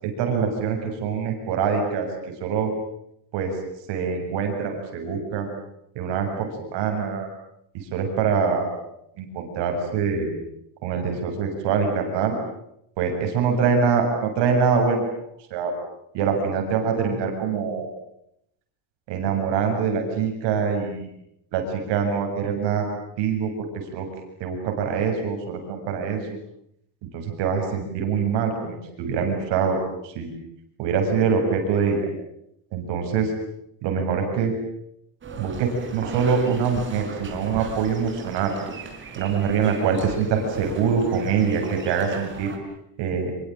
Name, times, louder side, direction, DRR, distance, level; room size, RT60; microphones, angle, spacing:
voice 1, 0.0-2.7 3.3-3.6 3.9-5.5 6.0-7.3 7.9-8.8 9.2-10.3 10.8-12.4 13.0-15.1 15.5-15.7 16.1-17.9 19.1-21.1 21.5-22.9 23.2-23.5 23.9-24.1 24.4-26.2 27.1-29.8 30.0-30.3 30.8-32.0 32.7-33.3 33.8-34.5 35.3-38.5 39.2-42.5 43.0-43.3, right 6 dB, 60° right, 4 dB, 7.3 m, -24 dB
sound 1, 35.2-42.6, right 4 dB, 25° right, 4.6 m, -37 dB
27.0 x 23.5 x 9.0 m, 0.77 s
cardioid pair, 175°, 47 cm